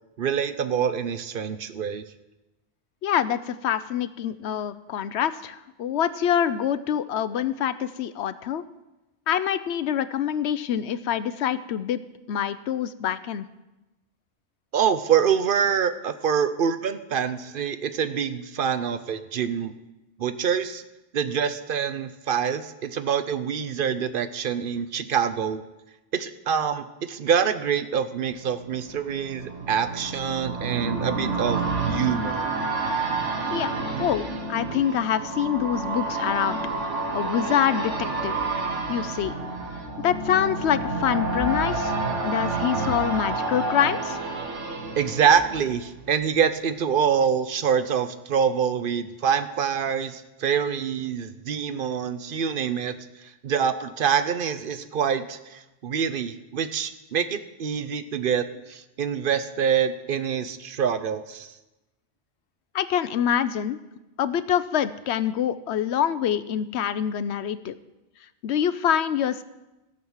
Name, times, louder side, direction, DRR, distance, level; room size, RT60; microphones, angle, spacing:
voice 1, 0.2-2.0 14.7-19.7 20.2-20.8 21.1-25.6 26.1-32.5 45.0-53.0 53.4-61.5, right 7 dB, 55° right, 12 dB, 0.8 m, -25 dB
voice 2, 3.0-8.6 9.3-12.0 12.3-13.5 33.5-36.6 37.1-37.9 38.2-38.3 38.9-39.3 40.0-44.2 62.7-63.8 64.2-67.7 68.4-69.4, left 9 dB, 70° left, 14 dB, 0.9 m, -25 dB
sound 1, 28.3-46.1 46.5-46.6, right 3 dB, 85° right, 1.6 m, -29 dB
14.5 x 6.2 x 7.3 m, 1.0 s
omnidirectional pair, 1.2 m